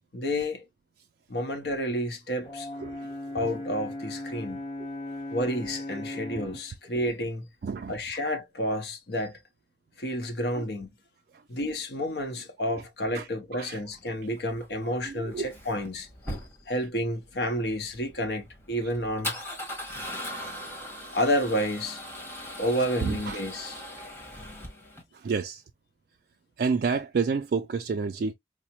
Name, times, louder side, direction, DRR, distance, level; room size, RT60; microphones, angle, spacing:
voice 1, 0.1-0.7 1.3-2.7 3.3-4.6 5.3-7.5 7.9-9.4 10.0-10.9 11.5-16.4 16.7-19.3 21.1-22.0 22.6-23.8, equal, 65° left, 0.8 m, -30 dB
Brass instrument, 2.4-6.7, left 1 dB, 35° left, 1.3 m, -37 dB
voice 2, 2.8-3.2 3.4-3.5 4.3-4.5 4.8-4.9 5.9-6.2 7.6-8.0 10.6-10.7 11.3-11.4 13.1-13.8 14.8-15.5 20.1-20.2 22.8-23.4 25.1-25.6 26.6-28.3, right 5 dB, 55° right, 0.3 m, -30 dB
Male speech man speaking / Car / Engine starting, 13.9-25.0, left 1 dB, 15° left, 1.2 m, -40 dB
4.8 x 2.1 x 2.9 m
head